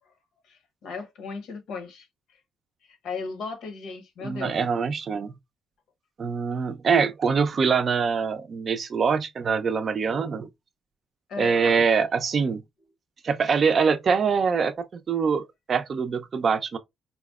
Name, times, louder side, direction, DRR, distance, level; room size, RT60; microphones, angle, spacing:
voice 1, 0.5-2.1 2.8-4.6 11.3-11.6, left 4 dB, 80° left, 0.9 m, -36 dB
voice 2, 4.2-5.3 6.2-10.5 11.4-12.6 13.2-16.8, right 5 dB, 50° right, 0.4 m, -24 dB
4.0 x 2.0 x 2.3 m
cardioid pair, 90°, 0 cm